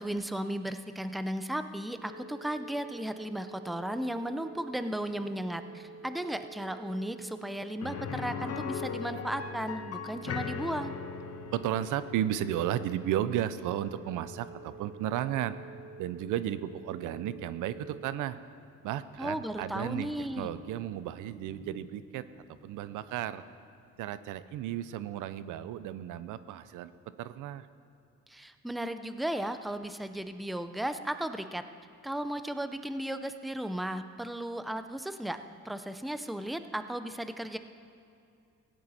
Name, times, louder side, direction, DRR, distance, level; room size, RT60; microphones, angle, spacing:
voice 1, 0.0-10.9 19.2-20.5 28.3-31.6 32.0-35.4 35.6-37.6, right 1 dB, ahead, 10 dB, 0.5 m, -35 dB
sound 1, 2.0-18.0, right 4 dB, 30° left, 2.6 m, -49 dB
sound 2, 5.0-6.1 8.0-9.1 10.7-11.8 13.6-14.6 16.3-23.6, right 1 dB, 20° right, 1.8 m, -57 dB
sound 3, 7.8-17.6 17.9-18.0 20.4-20.5, left 6 dB, 55° left, 0.9 m, -41 dB
voice 2, 11.5-15.5 16.0-18.4 18.8-23.4 24.0-26.9 27.2-27.7, right 11 dB, 85° right, 14 dB, 0.6 m, -34 dB
16.5 x 10.5 x 4.2 m, 2.5 s
cardioid pair, 90°, 30 cm